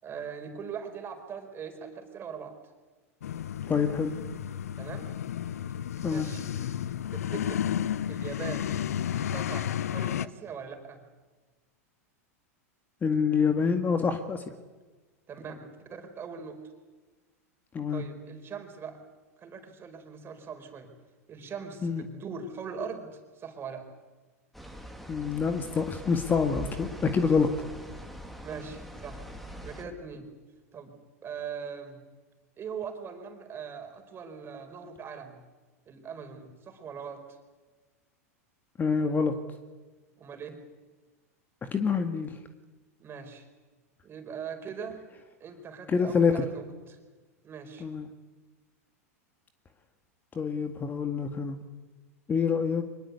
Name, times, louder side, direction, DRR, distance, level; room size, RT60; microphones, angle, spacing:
voice 1, 0.0-2.5 4.8-5.1 6.0-6.4 7.1-7.7 8.1-8.7 9.3-11.0 15.3-16.6 17.9-19.0 19.4-20.9 21.3-23.9 28.4-29.2 29.6-30.3 30.7-31.0 31.2-32.0 32.6-35.4 35.9-37.2 40.2-40.6 43.0-43.5 44.0-45.0 45.4-47.0 47.4-47.9, right 6 dB, 30° right, 6 dB, 4.7 m, -41 dB
sound 1, 3.2-10.3, left 10 dB, 75° left, 0.8 m, -32 dB
voice 2, 3.7-4.1 6.0-6.3 13.0-14.4 17.7-18.0 21.8-22.0 25.1-27.5 38.8-39.3 41.7-42.3 45.9-46.5 47.8-48.1 50.4-51.6 52.3-52.8, left 5 dB, 20° left, 7 dB, 1.9 m, -26 dB
sound 2, 24.5-29.8, equal, ahead, 2.9 m, -43 dB
24.5 x 21.0 x 8.3 m, 1.3 s
hypercardioid pair, 100°, 8 cm